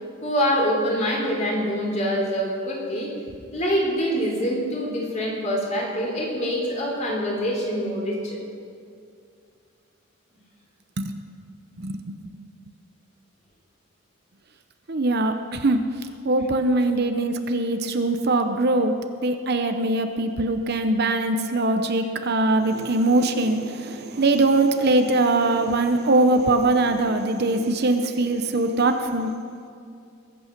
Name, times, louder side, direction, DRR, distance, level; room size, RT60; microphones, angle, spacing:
voice 1, 0.2-3.1 3.5-8.4, equal, 35° left, -1 dB, 3.5 m, -25 dB
voice 2, 11.8-12.1 14.9-15.8 16.2-18.9 19.2-29.3, right 2 dB, 50° right, 7 dB, 0.8 m, -22 dB
21.5 x 8.6 x 6.0 m, 2.4 s
head